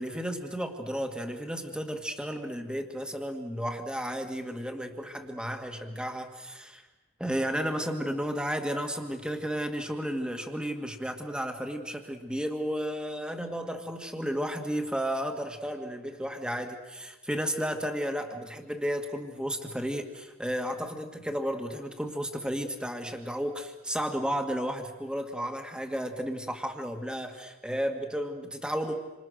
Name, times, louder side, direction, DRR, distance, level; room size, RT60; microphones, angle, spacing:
voice 1, 0.0-6.8 7.2-28.9, equal, 5° right, 4 dB, 1.9 m, -33 dB
28.5 x 26.0 x 6.5 m, 1.1 s
head